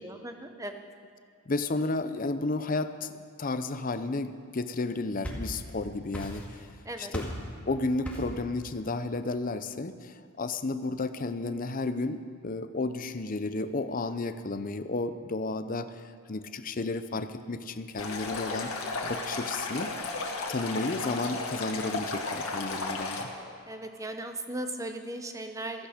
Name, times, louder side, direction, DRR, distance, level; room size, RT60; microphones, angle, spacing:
voice 1, 0.0-0.8 6.9-7.1 23.7-25.9, right 1 dB, 15° right, 6 dB, 0.8 m, -37 dB
voice 2, 1.5-6.7 7.0-7.3 7.7-16.0 16.3-18.7 19.0-19.9 20.5-23.3, left 3 dB, 40° left, 11 dB, 0.6 m, -32 dB
sound 1, 5.0-5.8 6.1-6.7 7.1-7.5 8.0-8.4, equal, 5° left, 2.0 m, -38 dB
Stream, 18.0-23.2, left 3 dB, 75° left, 1.8 m, -34 dB
16.0 x 14.0 x 5.1 m, 2.4 s
head